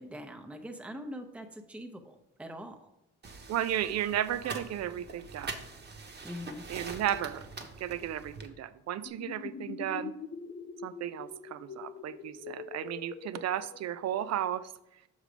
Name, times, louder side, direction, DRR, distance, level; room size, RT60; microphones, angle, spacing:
voice 1, 0.0-2.9 6.2-6.6, equal, 5° right, 4 dB, 0.7 m, -43 dB
sound 1, 3.2-8.5, right 4 dB, 35° right, 1.0 m, -44 dB
voice 2, 3.5-5.5 6.7-7.5 7.8-10.1 10.8-14.7, right 11 dB, 60° right, 14 dB, 0.5 m, -34 dB
sound 2, 9.1-14.4, left 6 dB, 40° left, 0.7 m, -44 dB
6.3 x 5.0 x 5.1 m, 0.85 s
cardioid pair, 90°, 30 cm